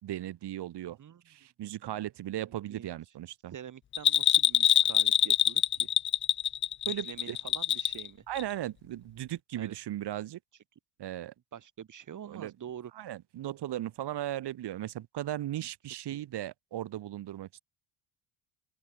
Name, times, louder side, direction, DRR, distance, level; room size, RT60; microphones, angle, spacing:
voice 1, 0.0-1.0 1.3-3.5 6.8-7.4 8.3-10.4 11.0-11.3 12.3-12.5 12.9-17.6, right 13 dB, 55° right, 4.9 m, -37 dB
voice 2, 3.5-5.9 7.0-8.2 9.6-9.8 11.5-12.9 16.1-16.2, right 9 dB, 35° right, 4.8 m, -46 dB
Bell, 3.9-8.1 8.4-8.5, left 10 dB, 25° left, 0.4 m, -25 dB
open air
cardioid pair, 165°, 49 cm